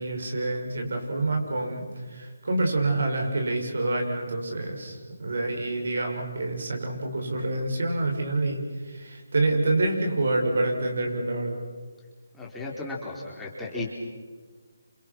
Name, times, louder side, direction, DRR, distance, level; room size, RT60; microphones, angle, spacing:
voice 1, 0.0-11.6, right 2 dB, 65° right, 2 dB, 7.0 m, -27 dB
voice 2, 12.3-13.9, left 2 dB, 5° left, -4 dB, 4.2 m, -35 dB
30.0 x 28.0 x 6.3 m, 1.5 s
figure-of-eight pair, 155°, 0 cm